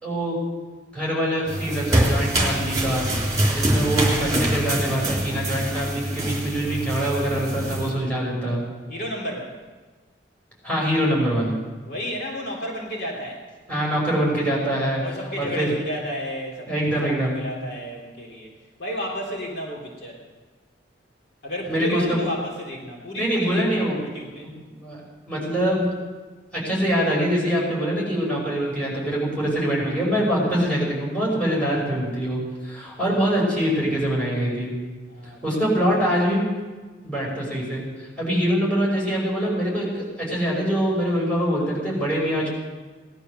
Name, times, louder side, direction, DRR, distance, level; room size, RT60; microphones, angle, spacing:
voice 1, 0.0-0.4 0.9-3.1 3.5-8.6 10.6-11.5 13.7-15.0 15.4-15.7 16.7-17.3 21.7-22.2 23.1-24.1 24.4-25.0 25.3-25.9 26.5-34.7 35.4-36.5 37.0-37.8 38.2-42.5, equal, 5° left, -5 dB, 5.6 m, -24 dB
sound 1, 1.5-7.9, right 1 dB, 20° right, 3.5 m, -24 dB
voice 2, 8.9-9.6 11.8-13.4 15.0-17.0 17.2-18.5 18.8-20.2 21.4-24.5 33.2-33.5 35.1-35.6, equal, 60° left, -2 dB, 3.3 m, -32 dB
18.5 x 11.5 x 6.6 m, 1.3 s
head